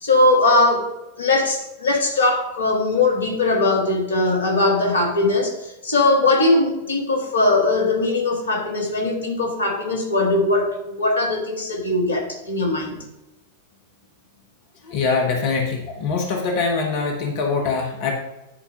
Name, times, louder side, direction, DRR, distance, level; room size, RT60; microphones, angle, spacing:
voice 1, 0.0-0.9 1.2-13.0, left 2 dB, 70° left, 1.6 m, -20 dB
voice 2, 14.8-18.1, left 4 dB, 50° left, 1.3 m, -23 dB
10.0 x 4.3 x 5.4 m
figure-of-eight pair, 90°, 0 cm